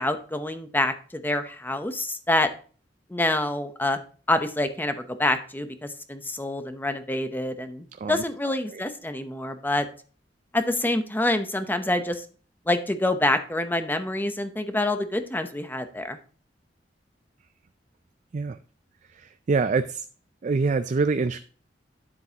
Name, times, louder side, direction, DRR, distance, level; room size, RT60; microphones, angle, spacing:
voice 1, 0.0-2.5 3.1-4.0 4.3-9.8 10.5-12.2 12.7-16.2, left 1 dB, 10° left, 9 dB, 0.8 m, -26 dB
voice 2, 19.5-20.0 20.4-21.4, right 4 dB, 40° right, 11 dB, 0.4 m, -24 dB
9.8 x 7.6 x 2.9 m, 0.39 s
head